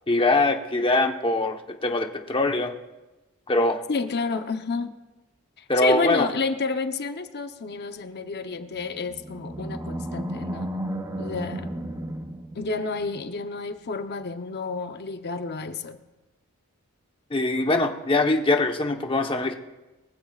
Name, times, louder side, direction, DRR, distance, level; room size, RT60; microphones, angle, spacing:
voice 1, 0.1-2.7 3.5-3.8 5.7-6.3 17.3-19.5, left 2 dB, 25° left, 3 dB, 1.1 m, -23 dB
voice 2, 3.9-4.9 5.6-10.7 11.2-11.7 12.5-16.0, left 4 dB, 50° left, 8 dB, 0.8 m, -30 dB
Animal, 8.6-13.2, right 1 dB, 15° right, 0.9 m, -33 dB
23.5 x 15.0 x 2.4 m, 1.1 s
head